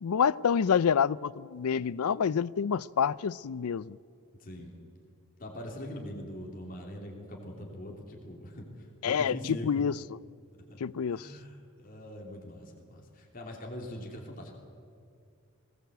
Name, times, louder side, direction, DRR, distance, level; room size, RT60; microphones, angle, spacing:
voice 1, 0.0-4.0 9.0-9.9 10.8-11.3, left 7 dB, 90° left, 21 dB, 0.4 m, -27 dB
voice 2, 4.4-4.8 5.4-9.7 10.7-10.8 11.1-14.5, left 1 dB, 40° left, 0 dB, 3.2 m, -42 dB
20.5 x 18.5 x 8.1 m, 2.4 s
head